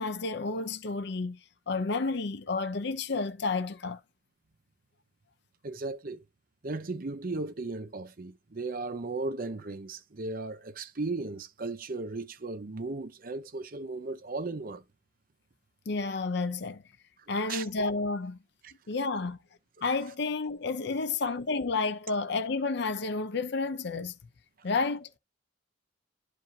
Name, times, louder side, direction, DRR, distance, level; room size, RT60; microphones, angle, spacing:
voice 1, 0.0-1.4 1.7-4.0 15.9-16.8 17.3-18.4 18.9-19.4 19.8-24.1 24.6-25.1, left 3 dB, 60° left, 0.6 m, -31 dB
voice 2, 5.6-6.2 6.6-14.8 17.4-17.6, right 3 dB, 45° right, 0.7 m, -36 dB
10.5 x 4.9 x 2.7 m
head